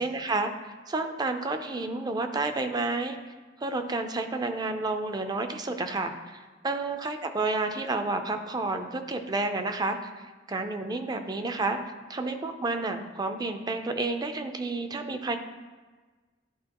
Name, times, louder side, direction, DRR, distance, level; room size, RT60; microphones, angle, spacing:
voice 1, 0.0-3.3 3.6-10.1 10.5-11.8 12.1-15.4, right 3 dB, 20° right, 7 dB, 0.4 m, -30 dB
11.0 x 4.4 x 2.9 m, 1.3 s
head